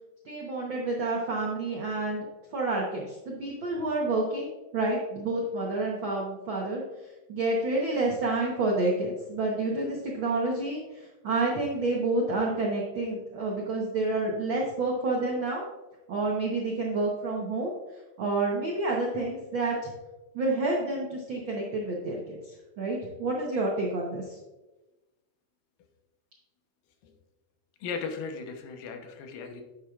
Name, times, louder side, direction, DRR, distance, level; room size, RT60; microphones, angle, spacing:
voice 1, 0.3-6.8 7.3-15.6 16.1-17.7 18.2-19.9 20.3-24.4, right 2 dB, 75° right, -2 dB, 1.1 m, -29 dB
voice 2, 27.8-29.6, left 5 dB, 90° left, 4 dB, 2.6 m, -37 dB
9.9 x 7.4 x 2.4 m, 1.1 s
omnidirectional pair, 3.8 m